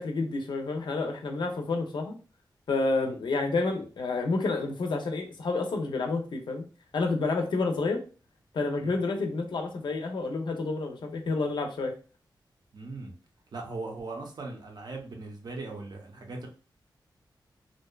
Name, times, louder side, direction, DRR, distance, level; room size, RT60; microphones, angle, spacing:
voice 1, 0.0-2.1 2.7-6.7 6.9-8.0 8.5-11.9, left 3 dB, 70° left, 3 dB, 0.5 m, -29 dB
voice 2, 12.7-13.1 13.5-16.5, right 3 dB, 60° right, 2 dB, 0.6 m, -39 dB
2.6 x 2.1 x 2.2 m, 0.36 s
wide cardioid pair, 130°, 8 cm